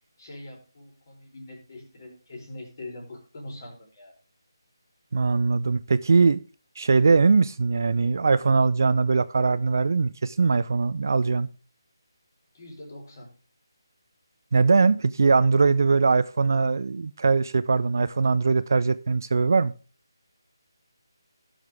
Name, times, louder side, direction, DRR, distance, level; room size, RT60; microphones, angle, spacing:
voice 1, 0.2-4.1 12.5-13.3, left 1 dB, 40° left, 4.4 m, -43 dB
voice 2, 5.1-6.4 6.8-11.5 14.5-19.7, right 4 dB, 45° right, 0.5 m, -21 dB
16.0 x 6.4 x 3.6 m
figure-of-eight pair, 150°, 2 cm